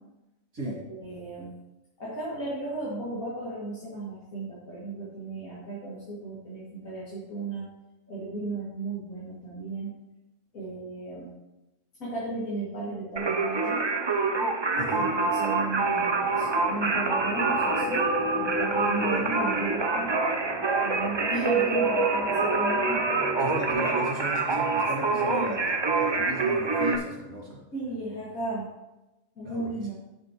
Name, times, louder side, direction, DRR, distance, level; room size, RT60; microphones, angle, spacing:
voice 1, 0.6-1.5 2.0-7.7 8.1-9.9 10.5-11.3 12.0-13.8 14.9-18.1 18.4-20.1 20.8-23.0 25.1-25.6 27.7-28.7 29.4-29.9, right 2 dB, 85° left, -9 dB, 2.7 m, -35 dB
Singing, 13.2-27.0, right 4 dB, 40° right, 0.4 m, -26 dB
voice 2, 14.8-15.1 23.4-27.6 29.4-29.9, equal, 85° right, -4 dB, 2.9 m, -35 dB
sound 1, 15.0-23.7, equal, 30° left, 3.1 m, -33 dB
10.5 x 7.5 x 3.0 m, 1.0 s
omnidirectional pair, 1.4 m